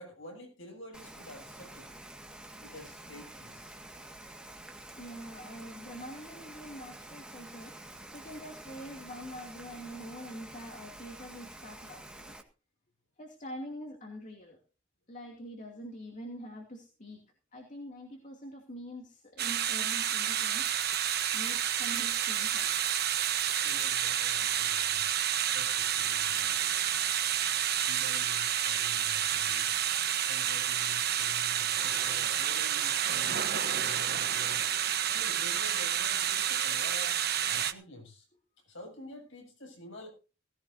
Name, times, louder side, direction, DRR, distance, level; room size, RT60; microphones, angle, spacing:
voice 1, 0.0-1.9 2.6-3.8 23.6-25.1 25.5-26.8 27.9-29.7 30.2-34.7 35.1-38.3 38.7-40.1, left 1 dB, 70° left, 3 dB, 7.3 m, -49 dB
Rain, 0.9-12.4, right 1 dB, 5° right, 1.9 m, -48 dB
voice 2, 5.0-7.7 8.1-12.3 13.2-14.6 15.1-17.3 17.5-20.7 21.3-22.8, equal, 40° left, 2 dB, 2.7 m, -45 dB
sound 1, 19.4-37.7, right 10 dB, 50° right, 1.2 m, -29 dB
sound 2, 20.3-24.6, right 8 dB, 35° right, 1.7 m, -45 dB
18.0 x 16.5 x 2.8 m, 0.34 s
head